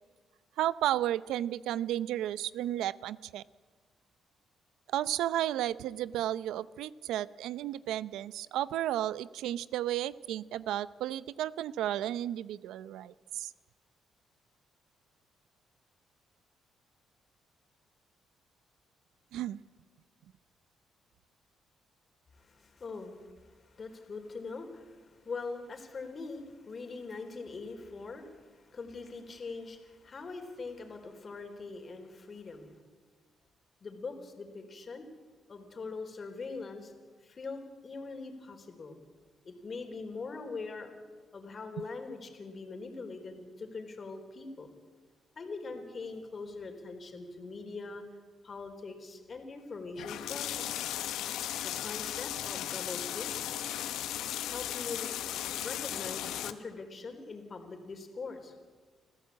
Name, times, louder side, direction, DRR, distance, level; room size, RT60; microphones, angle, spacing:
voice 1, 0.6-3.4 4.9-13.5 19.3-19.6, right 12 dB, 85° right, 18 dB, 0.6 m, -33 dB
voice 2, 22.3-32.7 33.8-35.1 35.5-36.9 37.2-39.0 39.4-40.9 41.3-44.7 45.4-48.0 48.4-50.8 51.6-53.3 54.5-55.1 55.6-58.5, left 4 dB, 40° left, 5 dB, 3.9 m, -42 dB
sound 1, 50.0-56.5, left 12 dB, 85° left, 1.1 m, -36 dB
26.5 x 15.0 x 8.5 m, 1.4 s
cardioid pair, 90°, 0 cm